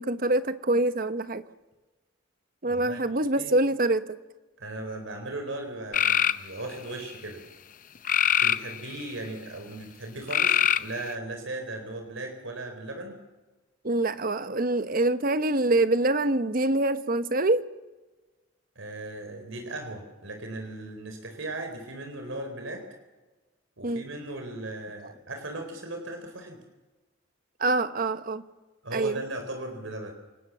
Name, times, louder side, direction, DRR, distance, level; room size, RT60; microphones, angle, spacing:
voice 1, 0.0-1.5 2.6-4.2 13.8-17.7 23.8-24.0 27.6-28.4 28.9-29.2, right 2 dB, 45° right, 11 dB, 1.1 m, -25 dB
voice 2, 2.6-3.0 3.4-3.5 4.6-7.4 8.4-13.1 18.8-22.8 23.8-26.6 28.8-30.1, right 2 dB, 85° right, 5 dB, 4.1 m, -37 dB
sound 1, 5.9-6.4 8.1-9.1 10.3-11.1, left 9 dB, 40° left, 0.7 m, -23 dB
28.5 x 19.0 x 7.3 m, 1.2 s
head